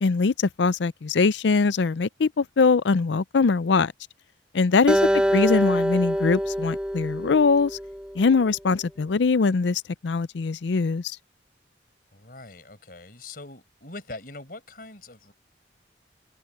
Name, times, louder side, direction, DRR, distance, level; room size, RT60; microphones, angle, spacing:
voice 1, 0.0-3.9 4.5-7.8 8.2-11.2, left 4 dB, 80° left, 0.5 m, -22 dB
Acoustic guitar, 4.9-8.2, equal, 5° right, 2.7 m, -25 dB
voice 2, 5.0-5.3 12.1-15.3, left 2 dB, 50° left, 5.3 m, -43 dB
head